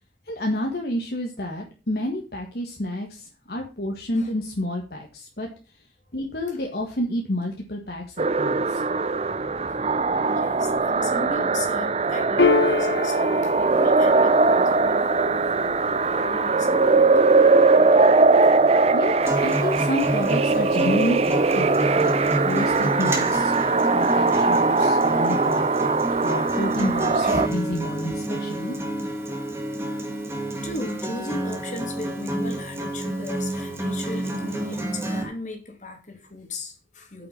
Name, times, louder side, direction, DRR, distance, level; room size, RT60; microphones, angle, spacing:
voice 1, 0.3-5.5 6.1-8.8 18.9-19.1 19.4-22.1 22.4-23.5 23.9-28.8, left 1 dB, 60° left, 0 dB, 1.6 m, -29 dB
sound 1, 8.2-27.5, right 3 dB, 35° right, 0.6 m, -20 dB
voice 2, 9.5-9.8 10.1-18.3 27.2-27.4 28.1-28.2 30.6-37.3, left 2 dB, 45° left, 2 dB, 2.7 m, -37 dB
Piano, 12.4-19.3, left 4 dB, 75° left, 0.8 m, -29 dB
Acoustic guitar, 19.2-35.2, right 1 dB, 15° right, 1.7 m, -29 dB
8.6 x 5.8 x 7.1 m, 0.34 s
head